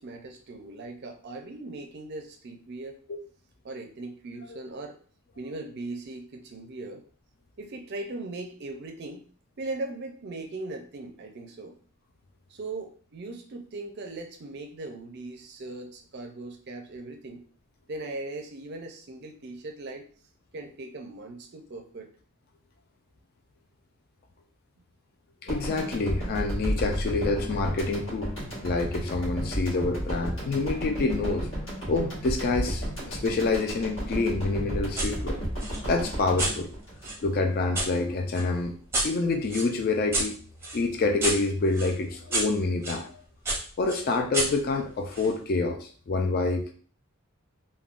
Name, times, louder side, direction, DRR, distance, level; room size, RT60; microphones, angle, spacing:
voice 1, 0.0-3.0 3.6-5.0 5.4-7.0 7.6-9.3 9.6-11.8 12.5-17.4 17.9-20.1 20.5-22.1, right 2 dB, 50° right, 5 dB, 0.4 m, -39 dB
voice 2, 25.4-28.3 28.6-31.5 31.9-35.4 35.9-36.7 37.2-38.7 39.0-40.4 40.7-43.2 43.8-46.7, left 3 dB, 45° left, 4 dB, 0.4 m, -27 dB
sound 1, 25.5-37.7, equal, 60° left, 1.4 m, -33 dB
sound 2, 35.0-35.1 35.6-37.9 38.3-43.0 43.5-45.3, right 2 dB, 10° right, 0.6 m, -32 dB
3.5 x 2.2 x 2.4 m, 0.43 s
head